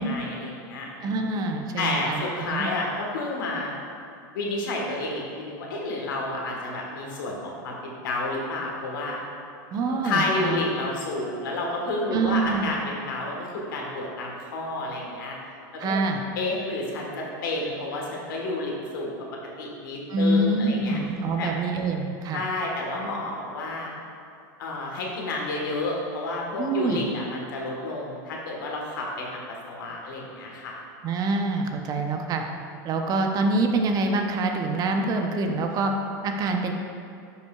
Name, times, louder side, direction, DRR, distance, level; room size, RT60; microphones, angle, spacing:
voice 1, 0.0-1.2 1.8-3.7 4.3-9.2 10.0-15.3 15.7-16.0 16.4-19.1 19.6-21.0 21.4-21.5 22.3-23.9 24.6-29.4 29.7-30.7, left 2 dB, 85° left, -2 dB, 1.4 m, -30 dB
voice 2, 1.0-2.2 2.5-2.7 9.7-10.6 12.1-12.7 15.8-16.2 20.1-22.4 26.6-27.1 31.0-32.4 32.8-35.9 36.2-36.7, right 3 dB, 35° right, 4 dB, 0.7 m, -25 dB
10.0 x 5.3 x 2.4 m, 2.5 s
supercardioid pair, 120°, 11 cm